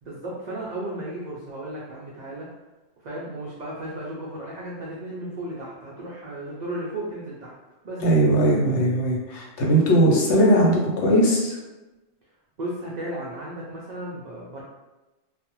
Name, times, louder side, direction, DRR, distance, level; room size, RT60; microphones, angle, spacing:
voice 1, 0.0-2.5 3.0-7.5 7.8-8.0 12.6-14.6, right 1 dB, 75° right, -5 dB, 0.4 m, -34 dB
voice 2, 8.0-11.6, right 1 dB, 70° left, -3 dB, 0.9 m, -19 dB
2.4 x 2.0 x 2.9 m, 1.1 s
omnidirectional pair, 1.3 m